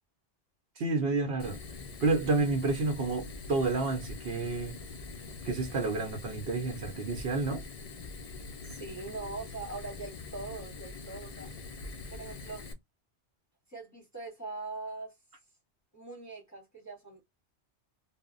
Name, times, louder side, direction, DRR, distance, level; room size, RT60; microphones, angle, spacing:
voice 1, 0.8-1.6 2.0-4.8 5.4-7.6, right 3 dB, 65° right, 0.8 m, -30 dB
Fire, 1.4-12.7, left 3 dB, 70° left, 0.3 m, -44 dB
voice 2, 8.6-11.5 12.1-12.7 13.7-15.2 15.9-17.2, right 3 dB, 20° left, 0.7 m, -42 dB
2.1 x 2.0 x 3.6 m
omnidirectional pair, 1.2 m